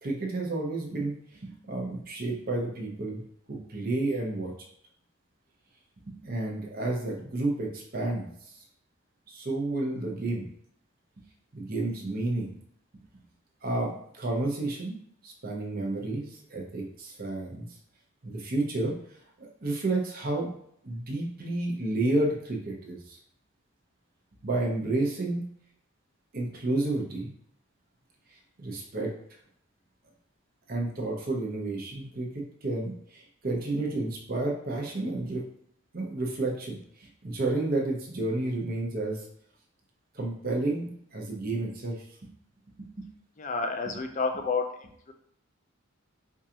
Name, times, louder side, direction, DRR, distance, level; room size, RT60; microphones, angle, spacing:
voice 1, 0.0-3.2 3.5-4.5 6.1-8.3 9.3-10.5 11.5-12.5 13.6-15.0 15.2-17.7 18.2-18.9 19.4-20.5 20.8-23.2 24.4-25.4 26.3-27.3 28.6-29.1 30.7-35.4 35.9-39.3 40.1-42.0 42.8-43.1, right 2 dB, 45° right, -1 dB, 0.8 m, -31 dB
voice 2, 43.4-44.7, left 4 dB, 35° left, 5 dB, 0.4 m, -29 dB
4.6 x 2.5 x 2.9 m, 0.69 s
head